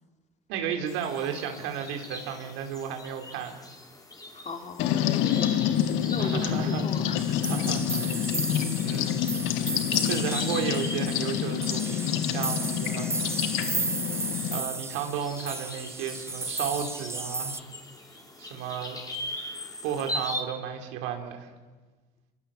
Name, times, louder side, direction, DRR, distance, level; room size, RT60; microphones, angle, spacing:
voice 1, 0.5-3.6 6.2-6.9 7.3-8.3 8.8-9.2 9.6-13.1 14.5-17.6 18.4-19.0 19.8-21.5, right 8 dB, 70° right, 4 dB, 4.0 m, -33 dB
sound 1, 0.9-20.4, left 2 dB, 15° left, 4.9 m, -41 dB
voice 2, 4.3-5.5 6.1-7.2, left 4 dB, 35° left, 5 dB, 3.3 m, -37 dB
sound 2, 4.8-14.6, left 10 dB, 65° left, 1.6 m, -27 dB
sound 3, 7.2-17.6, right 3 dB, 10° right, 0.7 m, -34 dB
27.5 x 22.5 x 7.3 m, 1.3 s
hypercardioid pair, 70°, 21 cm